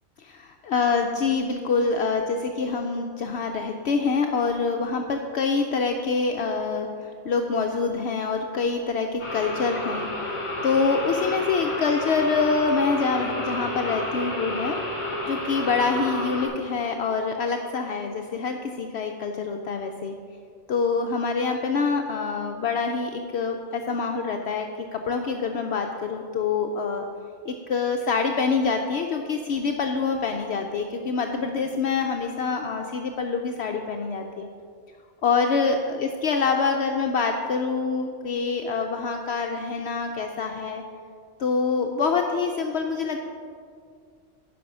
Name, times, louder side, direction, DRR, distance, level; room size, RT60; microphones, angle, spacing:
voice 1, 0.2-10.4 10.6-14.8 15.3-20.2 20.7-27.1 27.4-34.5 35.2-40.8 41.4-43.2, left 4 dB, 65° left, 4 dB, 0.8 m, -26 dB
sound 1, 9.2-16.5, left 1 dB, 35° left, 2.1 m, -31 dB
10.0 x 5.4 x 5.9 m, 2.2 s
omnidirectional pair, 1.3 m